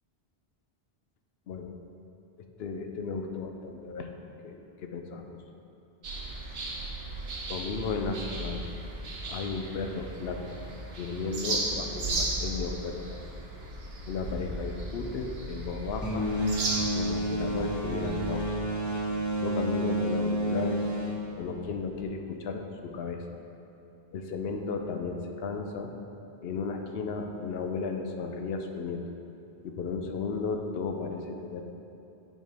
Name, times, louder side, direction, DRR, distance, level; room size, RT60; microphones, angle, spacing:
voice 1, 2.6-4.1 4.4-5.4 7.5-8.6 9.3-10.6 11.0-13.2 14.1-16.3 17.0-18.5 19.4-20.8 21.4-23.2 24.1-25.9 26.4-29.2 29.6-31.6, left 4 dB, 80° left, 4 dB, 0.8 m, -34 dB
sound 1, 6.0-18.5, right 2 dB, 80° right, 1.1 m, -36 dB
sound 2, 16.0-22.0, right 1 dB, 20° left, 0.5 m, -30 dB
9.1 x 4.4 x 3.4 m, 2.9 s
omnidirectional pair, 1.0 m